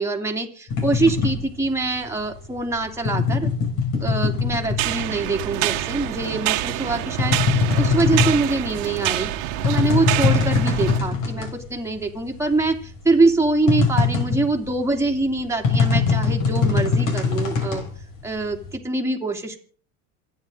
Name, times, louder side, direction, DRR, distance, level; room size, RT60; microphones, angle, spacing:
voice 1, 0.0-3.5 4.0-9.3 9.6-17.8 18.2-19.6, right 3 dB, 5° right, 2 dB, 2.8 m, -24 dB
sound 1, 0.7-5.4 5.7-11.6 11.9-12.0 12.3-18.8, left 5 dB, 50° left, 5.7 m, -22 dB
sound 2, 4.8-11.0, right 15 dB, 70° right, 1.7 m, -26 dB
27.5 x 10.0 x 3.9 m, 0.44 s
supercardioid pair, 115°, 40 cm